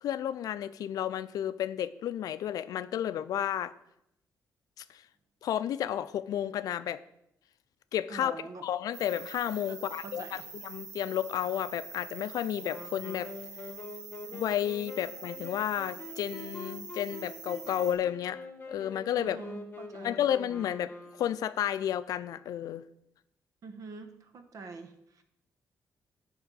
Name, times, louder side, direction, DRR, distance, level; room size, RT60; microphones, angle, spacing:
voice 1, 0.0-3.7 4.8-5.0 5.4-7.0 7.9-13.3 14.3-18.4 18.7-19.4 20.0-20.9 21.2-22.8, left 10 dB, 80° left, 15 dB, 0.4 m, -32 dB
voice 2, 8.1-8.7 9.7-10.5 19.2-20.2 23.6-25.2, right 4 dB, 65° right, 8 dB, 1.2 m, -45 dB
sound 1, 8.9-17.9, right 5 dB, 90° right, 2.1 m, -45 dB
Wind instrument woodwind instrument, 12.6-21.6, left 3 dB, 30° left, 1.3 m, -45 dB
11.0 x 3.7 x 6.9 m, 0.81 s
cardioid pair, 95°, 6 cm